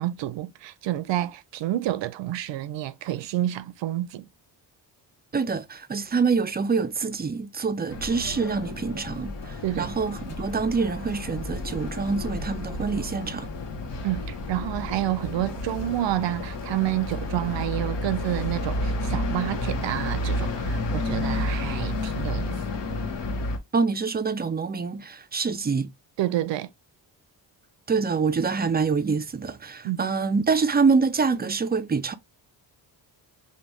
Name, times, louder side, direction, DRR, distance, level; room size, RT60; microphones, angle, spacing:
voice 1, 0.0-4.3 9.6-9.9 14.0-22.5 26.2-26.7 29.8-30.1, right 14 dB, 90° right, 0.6 m, -29 dB
voice 2, 5.3-13.5 23.7-25.9 27.9-32.1, right 5 dB, 25° right, 0.3 m, -26 dB
sound 1, 7.9-23.6, left 2 dB, 75° left, 1.1 m, -31 dB
5.2 x 2.3 x 2.9 m
cardioid pair, 130°, 43 cm